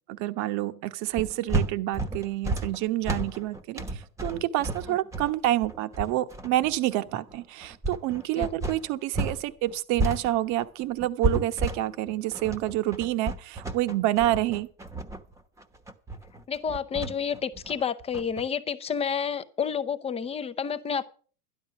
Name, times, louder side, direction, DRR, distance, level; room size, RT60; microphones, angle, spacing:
voice 1, 0.1-14.7, right 14 dB, 40° right, 1.0 m, -28 dB
sound 1, 1.1-9.4 9.7-18.4, right 2 dB, 5° right, 1.0 m, -32 dB
voice 2, 16.5-21.0, left 7 dB, 15° left, 0.6 m, -30 dB
12.0 x 11.0 x 5.8 m
hypercardioid pair, 120°, 45 cm